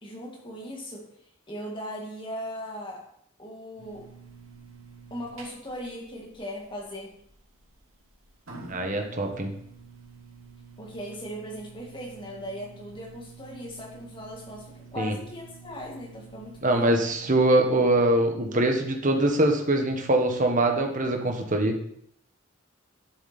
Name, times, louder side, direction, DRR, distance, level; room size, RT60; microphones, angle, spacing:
voice 1, 0.0-1.1 1.5-3.0 3.4-4.1 5.1-7.1 10.8-17.0, equal, 25° left, 0 dB, 2.0 m, -38 dB
sound 1, 3.8-17.4, right 4 dB, 75° right, 2.6 m, -49 dB
voice 2, 8.7-9.5 15.0-15.1 16.6-21.7, right 1 dB, 40° right, 4 dB, 1.4 m, -23 dB
11.5 x 7.1 x 4.3 m, 0.70 s
head